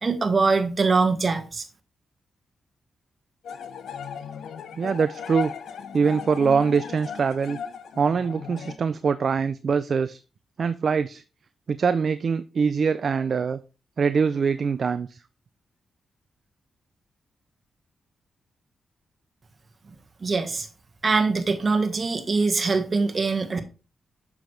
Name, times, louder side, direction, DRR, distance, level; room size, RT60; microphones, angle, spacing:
voice 1, 0.0-1.6 20.2-20.7 21.0-23.6, right 4 dB, 40° right, 7 dB, 1.3 m, -23 dB
sound 1, 3.4-8.8, left 7 dB, 80° left, 0.7 m, -36 dB
voice 2, 4.8-5.5 5.9-7.6 8.0-10.2 10.6-11.2 11.7-13.6 14.0-15.2, right 5 dB, 55° right, 13 dB, 0.4 m, -23 dB
7.1 x 6.0 x 3.2 m, 0.33 s
cardioid pair, 75°, 0 cm